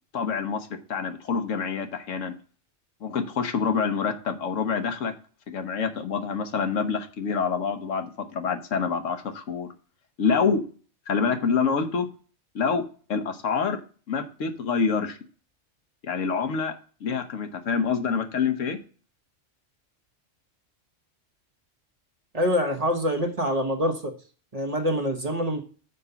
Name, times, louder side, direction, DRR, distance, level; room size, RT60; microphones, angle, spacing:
voice 1, 0.1-2.3 3.0-5.1 5.5-9.7 10.2-10.6 11.1-12.1 12.5-12.8 13.1-13.8 14.1-15.2 16.0-16.7 17.0-18.8, left 5 dB, 80° left, 7 dB, 1.3 m, -26 dB
voice 2, 22.3-24.1 24.5-25.6, equal, 30° right, 2 dB, 1.2 m, -25 dB
6.8 x 5.2 x 6.8 m, 0.40 s
omnidirectional pair, 1.3 m